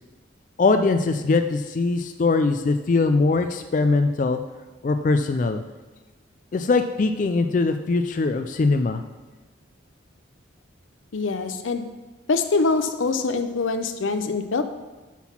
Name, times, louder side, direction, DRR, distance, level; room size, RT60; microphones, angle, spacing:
voice 1, 0.6-4.4 4.8-5.6 6.5-9.0, left 3 dB, 40° left, 7 dB, 0.3 m, -21 dB
voice 2, 11.1-11.9 12.3-14.6, left 4 dB, 90° left, 9 dB, 0.6 m, -24 dB
5.8 x 5.8 x 5.9 m, 1.2 s
head